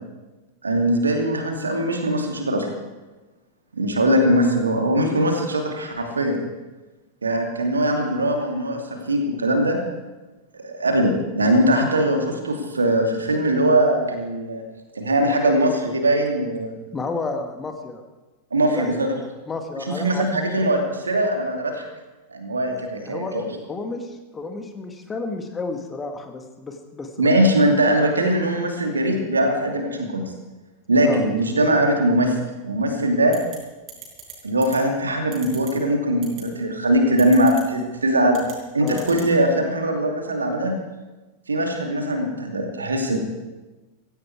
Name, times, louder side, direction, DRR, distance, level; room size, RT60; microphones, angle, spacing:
voice 1, 0.6-2.7 3.8-6.4 7.2-9.8 10.6-14.6 14.9-16.8 18.5-19.1 20.0-21.9 22.3-23.5 27.2-30.2 30.9-32.4 32.6-33.3 34.4-38.4 38.7-40.7 41.5-43.2, right 1 dB, 75° right, 3 dB, 2.6 m, -21 dB
voice 2, 16.9-18.0 18.7-19.0 19.5-20.2 23.0-27.3 31.0-31.3 38.8-39.1, left 3 dB, 15° left, 5 dB, 1.8 m, -31 dB
sound 1, 33.3-33.6 33.9-34.3 34.6-34.8 35.3-35.7 36.2-36.4 37.2-37.6 38.3-38.5 38.9-39.3, right 12 dB, 40° right, 5.6 m, -38 dB
16.5 x 15.5 x 4.8 m, 1.2 s
figure-of-eight pair, 90°, 0 cm